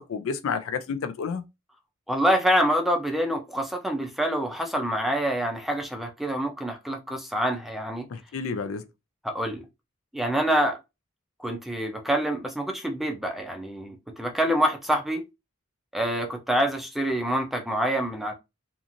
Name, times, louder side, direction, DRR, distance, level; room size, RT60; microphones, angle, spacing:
voice 1, 0.0-1.4 8.1-8.8, left 5 dB, 70° left, 0.4 m, -30 dB
voice 2, 2.1-8.1 9.2-9.6 10.1-10.8 11.4-15.2 15.9-18.3, equal, ahead, 0.5 m, -26 dB
2.8 x 2.5 x 2.5 m
head